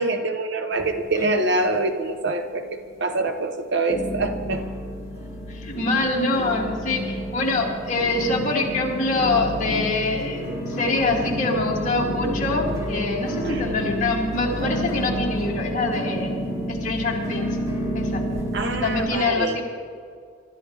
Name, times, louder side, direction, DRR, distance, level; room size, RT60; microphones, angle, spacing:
voice 1, 0.0-4.6 13.4-13.7 18.5-19.6, right 2 dB, 55° right, 7 dB, 1.0 m, -25 dB
sound 1, 0.7-1.7 1.9-2.6 3.1-3.2 3.9-19.1, equal, 15° right, 2.9 m, -29 dB
voice 2, 5.5-10.4 10.7-16.3 16.7-17.5 17.9-18.2 18.8-19.6, left 3 dB, 35° left, -3 dB, 2.9 m, -25 dB
25.0 x 13.0 x 3.5 m, 2.1 s
head